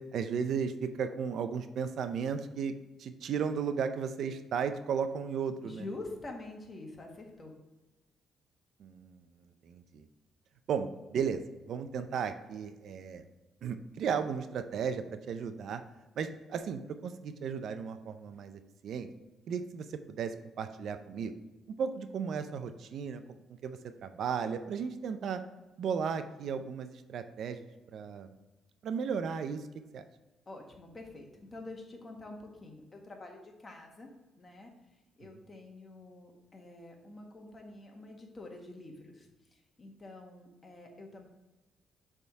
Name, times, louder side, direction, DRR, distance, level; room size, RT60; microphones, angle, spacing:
voice 1, 0.0-2.7 3.0-5.9 8.8-10.0 10.7-11.4 11.7-13.2 13.6-15.8 16.2-19.1 19.5-21.3 21.8-23.2 23.6-25.4 25.8-28.3 28.8-29.6 29.9-30.0, right 6 dB, 70° right, 9 dB, 0.5 m, -35 dB
voice 2, 5.6-7.5 30.5-34.1 34.3-34.7 35.2-39.3 39.8-41.3, left 2 dB, 30° left, 2 dB, 1.4 m, -47 dB
6.7 x 3.6 x 4.6 m, 1.1 s
cardioid pair, 90°, 0 cm